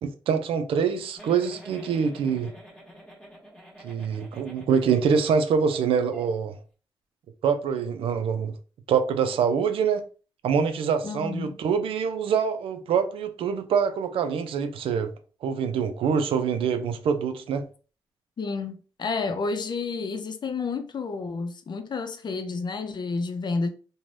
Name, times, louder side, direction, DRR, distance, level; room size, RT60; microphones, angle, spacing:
voice 1, 0.0-2.5 3.8-6.5 7.4-8.6 8.9-10.0 10.4-15.1 15.4-17.7, right 6 dB, 90° right, 0.4 m, -25 dB
Giggle, 1.2-5.4 5.7-5.8 6.1-6.3, equal, 10° left, 1.3 m, -47 dB
voice 2, 11.0-11.6 18.4-23.7, left 4 dB, 55° left, 0.5 m, -30 dB
3.1 x 2.2 x 2.6 m
cardioid pair, 60°, 9 cm